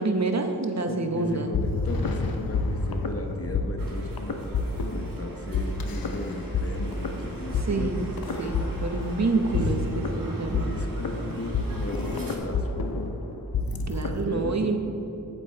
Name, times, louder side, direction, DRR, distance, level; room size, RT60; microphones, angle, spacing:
voice 1, 0.0-1.5 7.6-8.0 8.4-10.7 13.9-14.8, right 3 dB, 50° right, 5 dB, 0.9 m, -27 dB
voice 2, 0.9-8.6 9.3-9.6 10.7-13.1 14.2-14.8, left 2 dB, 40° left, 3 dB, 0.9 m, -36 dB
sound 1, 1.2-14.2, left 4 dB, 90° left, 0.7 m, -29 dB
sound 2, 3.8-12.4, right 1 dB, 70° right, 1.5 m, -40 dB
8.6 x 8.3 x 4.5 m, 2.9 s
wide cardioid pair, 75°, 34 cm